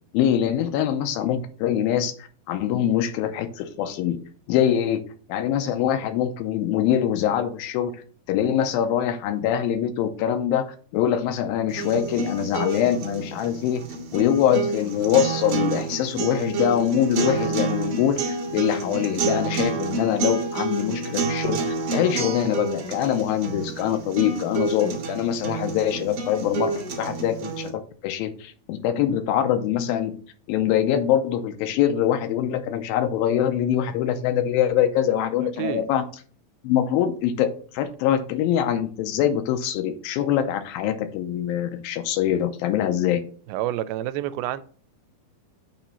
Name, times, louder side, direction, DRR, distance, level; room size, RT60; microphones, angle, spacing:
voice 1, 0.1-2.1 2.5-4.2 4.5-5.0 5.3-7.9 8.3-13.9 14.1-30.1 30.5-36.0 36.6-43.2, left 10 dB, 85° left, 8 dB, 2.4 m, -24 dB
sound 1, 11.7-27.7, right 4 dB, 55° right, 1.5 m, -29 dB
voice 2, 43.5-44.6, right 13 dB, 85° right, 13 dB, 2.4 m, -28 dB
8.8 x 3.0 x 5.5 m, 0.43 s
omnidirectional pair, 4.4 m